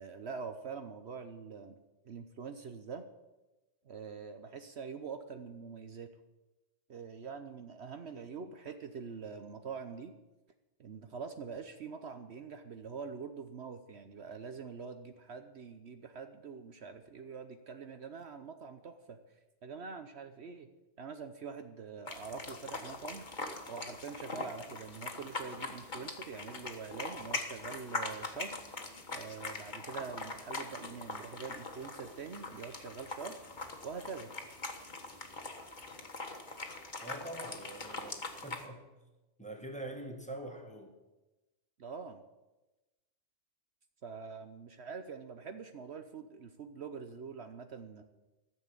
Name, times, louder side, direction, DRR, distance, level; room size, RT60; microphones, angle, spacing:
voice 1, 0.0-1.8 2.0-3.1 3.8-6.1 6.9-10.1 10.8-19.2 19.6-20.7 21.0-23.3 23.7-28.6 29.1-33.4 33.8-34.3 41.8-42.2 44.0-48.0, right 5 dB, 60° right, 8 dB, 1.1 m, -44 dB
sound 1, 22.1-38.7, left 3 dB, 40° left, 1.5 m, -42 dB
voice 2, 37.0-38.9 39.4-40.9, right 1 dB, 5° left, 2 dB, 1.8 m, -44 dB
14.0 x 7.2 x 9.8 m, 1.1 s
omnidirectional pair, 1.3 m